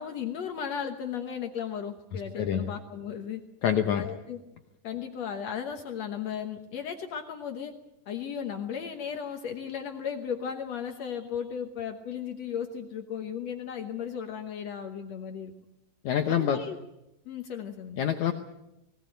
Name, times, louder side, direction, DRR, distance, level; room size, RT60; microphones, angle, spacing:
voice 1, 0.0-3.4 3.9-4.4 4.8-7.7 8.1-15.5 16.3-16.8 17.2-18.0, left 8 dB, 75° left, 5 dB, 1.6 m, -35 dB
voice 2, 2.1-2.7 3.6-4.0 16.0-16.6 18.0-18.3, left 9 dB, 90° left, 6 dB, 1.6 m, -26 dB
20.0 x 18.5 x 9.0 m, 0.89 s
omnidirectional pair, 4.8 m